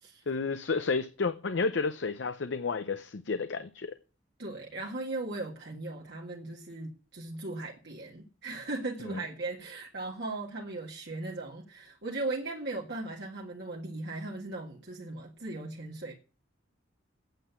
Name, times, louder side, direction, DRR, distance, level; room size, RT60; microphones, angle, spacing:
voice 1, 0.3-3.9 9.1-9.2, left 4 dB, 65° left, 0.6 m, -31 dB
voice 2, 4.4-16.1, right 2 dB, 60° right, 1.7 m, -38 dB
9.1 x 7.6 x 8.2 m
head